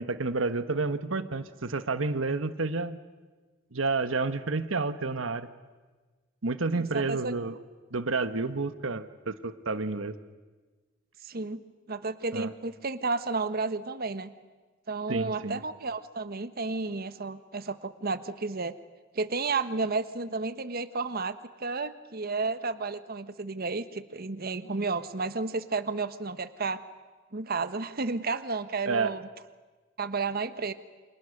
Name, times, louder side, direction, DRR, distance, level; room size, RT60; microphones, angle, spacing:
voice 1, 0.0-3.0 3.7-5.5 6.4-7.5 7.9-10.1 12.3-12.5 15.1-15.6 24.7-24.9 28.9-29.1, right 3 dB, 85° right, 11 dB, 1.3 m, -30 dB
voice 2, 6.7-7.3 11.2-11.6 11.9-14.3 14.9-18.7 19.1-26.8 27.3-29.2 30.0-30.7, right 3 dB, 50° right, 12 dB, 1.2 m, -32 dB
29.0 x 27.0 x 6.6 m, 1.3 s
head